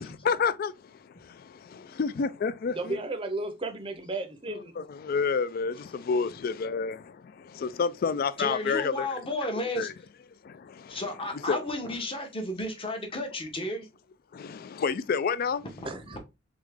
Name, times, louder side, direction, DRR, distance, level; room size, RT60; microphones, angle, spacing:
voice 1, 0.0-3.0 4.5-9.1 9.8-9.9 10.4-11.0 11.5-11.6 14.3-15.7, left 5 dB, 45° left, 0.3 m, -30 dB
voice 2, 2.8-4.7 15.8-16.2, right 2 dB, 25° right, 0.6 m, -34 dB
voice 3, 8.4-9.9 10.9-13.9 15.8-16.2, left 1 dB, 25° left, 0.9 m, -33 dB
3.6 x 3.5 x 3.4 m
head